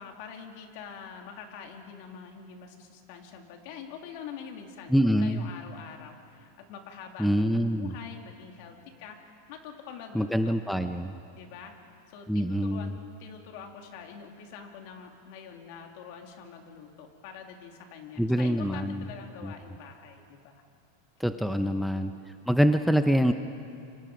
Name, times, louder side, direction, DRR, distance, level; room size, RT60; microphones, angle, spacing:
voice 1, 0.0-10.6 11.3-11.7 12.1-20.6 21.3-21.8, left 7 dB, 60° left, 3 dB, 3.1 m, -45 dB
voice 2, 4.9-5.5 7.2-7.9 10.1-11.2 12.3-12.9 18.2-19.1 19.4-19.5 21.2-22.1 22.5-23.3, equal, ahead, 8 dB, 0.7 m, -25 dB
29.0 x 25.0 x 5.1 m, 2.5 s
supercardioid pair, 135°, 0 cm